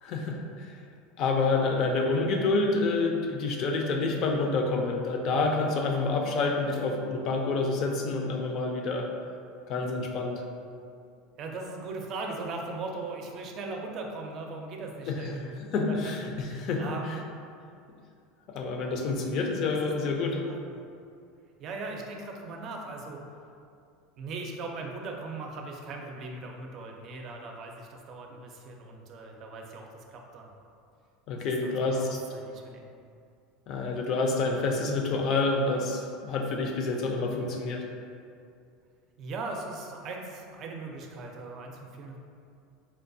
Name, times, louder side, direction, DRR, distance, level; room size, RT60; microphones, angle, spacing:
voice 1, 0.0-0.7 1.2-9.1 9.7-10.4 15.1-15.2 15.7-16.8 18.5-20.4 31.3-32.2 33.7-37.8, left 3 dB, 55° left, 2 dB, 0.5 m, -28 dB
voice 2, 11.4-15.5 15.9-16.1 16.8-17.2 19.7-19.8 20.2-20.8 21.6-23.2 24.2-30.5 31.3-32.9 39.2-42.2, right 3 dB, 50° right, 1 dB, 0.5 m, -39 dB
4.4 x 2.3 x 2.6 m, 2.4 s
supercardioid pair, 110°, 0 cm